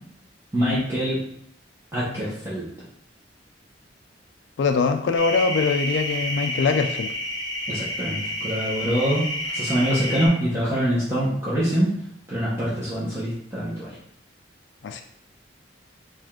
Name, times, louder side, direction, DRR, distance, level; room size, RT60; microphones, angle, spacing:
voice 1, 0.5-1.2 1.9-2.7 7.7-9.2 9.5-11.9 12.3-13.9, equal, 15° right, -9 dB, 0.9 m, -24 dB
voice 2, 4.6-7.1 14.8-15.0, left 4 dB, 70° left, 6 dB, 0.3 m, -23 dB
sound 1, 5.2-10.3, equal, 25° left, 1.0 m, -29 dB
4.9 x 2.4 x 3.6 m, 0.69 s
head